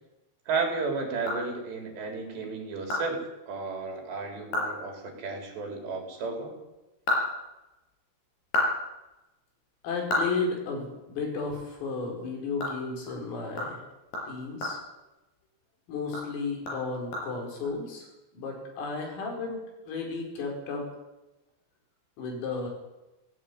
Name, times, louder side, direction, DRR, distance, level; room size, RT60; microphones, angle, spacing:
voice 1, 0.5-6.5, right 4 dB, 60° right, 3 dB, 5.7 m, -33 dB
sound 1, 0.8-2.0 2.4-2.5 2.9-3.0 3.4-3.5 3.9-4.0 4.4-4.8 5.0-5.2 6.7-7.9 8.3-11.2 11.6-11.7 12.1-15.6 16.0-17.6, left 2 dB, 50° left, 6.9 m, -33 dB
voice 2, 9.8-13.8 14.3-14.8 15.9-18.1 18.3-19.6 19.8-20.9 22.2-22.7, left 4 dB, 80° left, 1 dB, 7.6 m, -33 dB
18.0 x 17.0 x 9.5 m, 1.0 s
omnidirectional pair, 5.9 m